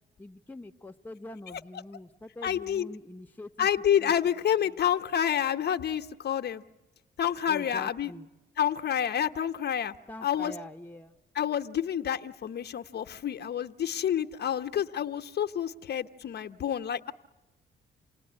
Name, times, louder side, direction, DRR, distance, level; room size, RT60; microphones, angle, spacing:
voice 1, 0.2-3.7 4.0-4.1 4.7-4.8 7.5-8.3 10.1-11.2, left 2 dB, 10° left, 4 dB, 0.9 m, -44 dB
voice 2, 2.4-2.9 3.6-6.6 7.2-8.1 8.6-9.9 10.2-10.5 11.3-17.1, left 9 dB, 55° left, 7 dB, 0.9 m, -28 dB
28.5 x 19.0 x 9.8 m, 1.1 s
cardioid pair, 90°, 20 cm